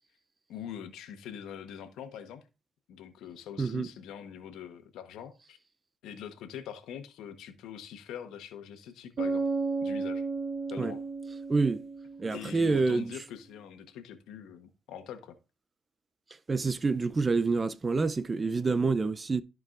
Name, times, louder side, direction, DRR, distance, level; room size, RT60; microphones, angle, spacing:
voice 1, 0.5-2.4 2.9-5.6 6.0-9.5 9.8-10.2 10.7-11.0 12.3-15.4, left 9 dB, 85° left, 1.2 m, -43 dB
voice 2, 3.6-3.9 10.8-10.9 11.5-11.8 12.2-13.1 16.5-19.4, right 4 dB, 30° right, 0.5 m, -27 dB
Bass guitar, 9.2-12.8, right 4 dB, 55° right, 2.8 m, -33 dB
13.5 x 4.7 x 2.5 m
cardioid pair, 90°, 0 cm